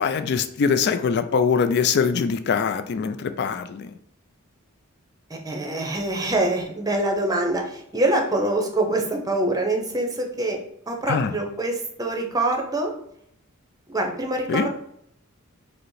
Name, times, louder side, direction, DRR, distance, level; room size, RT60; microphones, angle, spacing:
voice 1, 0.0-3.9 11.1-11.3 14.5-14.7, left 6 dB, 50° left, 9 dB, 0.3 m, -23 dB
voice 2, 5.3-10.6 10.9-12.9 13.9-14.7, right 2 dB, 15° right, 2 dB, 0.7 m, -25 dB
4.9 x 2.1 x 4.7 m, 0.71 s
head